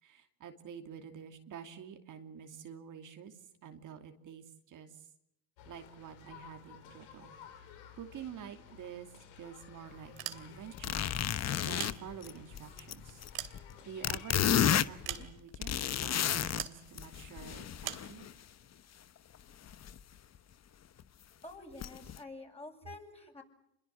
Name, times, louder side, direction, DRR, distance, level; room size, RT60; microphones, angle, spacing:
voice 1, 0.0-5.1 5.7-7.3 7.9-9.1 9.4-11.1 11.6-13.2 13.8-18.3, right 8 dB, 55° right, 5 dB, 2.8 m, -48 dB
sound 1, 5.6-15.3, left 8 dB, 90° left, 3.8 m, -54 dB
sound 2, 10.0-10.8 11.5-12.5 13.0-14.3 15.0-15.7 16.6-16.8 17.8-18.1, right 13 dB, 75° right, 2.8 m, -42 dB
sound 3, 10.8-13.7 14.0-16.6 17.0-18.3 19.7-20.0 20.4-20.5 21.0-21.1 21.8-22.2, left 10 dB, 45° left, 1.1 m, -32 dB
voice 2, 21.4-23.4, left 2 dB, 15° left, 1 dB, 7.8 m, -48 dB
27.0 x 22.5 x 7.6 m, 0.79 s
supercardioid pair, 85°, 37 cm